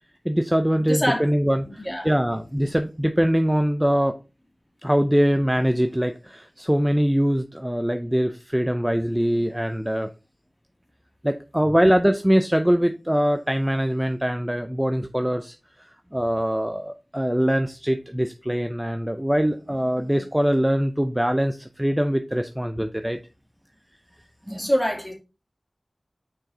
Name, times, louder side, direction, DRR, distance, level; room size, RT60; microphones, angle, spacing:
voice 1, 0.2-4.2 4.8-10.1 11.2-15.5 16.1-23.2 24.5-24.7, equal, 10° right, 0.6 m, -23 dB
voice 2, 0.8-1.3 1.6-2.1 24.5-25.1, equal, 15° left, 2.6 m, -25 dB
6.3 x 4.8 x 4.2 m
wide cardioid pair, 60°, 0 cm